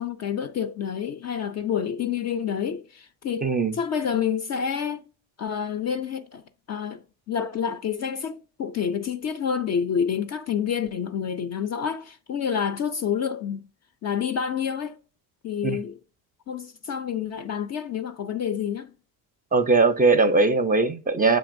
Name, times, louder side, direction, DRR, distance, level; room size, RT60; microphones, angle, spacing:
voice 1, 0.0-5.1 5.4-6.4 6.7-13.7 14.0-15.0 15.4-16.0 16.5-18.9, left 7 dB, 35° left, 0.4 m, -28 dB
voice 2, 3.4-3.8 15.6-15.8 19.5-21.4, right 3 dB, 20° right, 0.5 m, -20 dB
7.0 x 2.9 x 2.5 m
hypercardioid pair, 60°, 47 cm